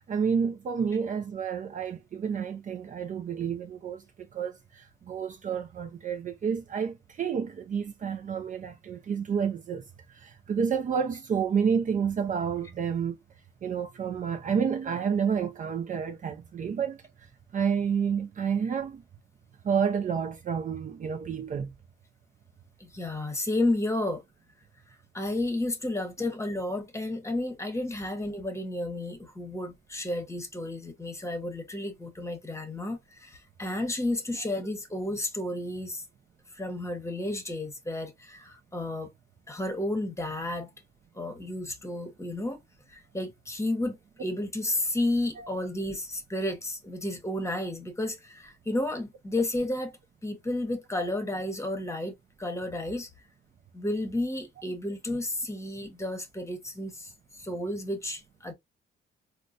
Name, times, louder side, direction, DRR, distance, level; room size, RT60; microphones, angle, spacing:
voice 1, 0.1-4.0 4.3-9.8 10.2-13.2 13.6-17.0 17.5-19.0 19.6-21.7 45.4-45.5, right 7 dB, 40° right, 0.5 m, -29 dB
voice 2, 22.8-24.2 25.1-36.0 36.5-39.1 39.5-40.7 41.2-42.6 42.9-49.9 50.2-53.1 53.7-58.5, left 1 dB, 15° left, 1.0 m, -32 dB
3.8 x 2.1 x 2.5 m
cardioid pair, 90°, 20 cm